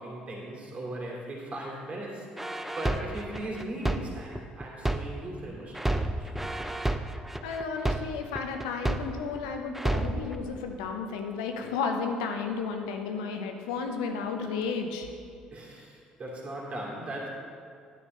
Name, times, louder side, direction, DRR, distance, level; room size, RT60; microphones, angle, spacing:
voice 1, 0.0-2.3 2.8-6.3 15.5-17.3, right 1 dB, 40° right, -3 dB, 2.6 m, -38 dB
sound 1, 2.4-5.4 5.7-9.4 9.7-10.3, right 1 dB, 5° right, 0.5 m, -30 dB
voice 2, 7.4-15.1, left 5 dB, 75° left, 4 dB, 0.8 m, -33 dB
10.5 x 9.3 x 3.2 m, 2.3 s
hypercardioid pair, 55°, 4 cm